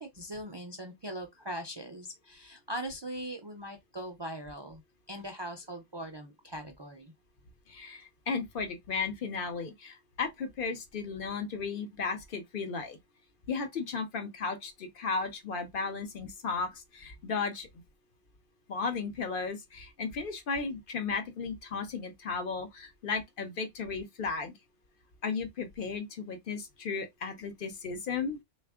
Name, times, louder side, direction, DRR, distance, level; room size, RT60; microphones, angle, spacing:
voice 1, 0.0-4.8 5.1-7.1, right 1 dB, 40° right, 0.4 m, -40 dB
voice 2, 7.7-13.0 13.5-17.7 18.7-24.5 25.2-28.4, left 5 dB, 60° left, 0.8 m, -35 dB
3.3 x 2.4 x 3.5 m
omnidirectional pair, 1.1 m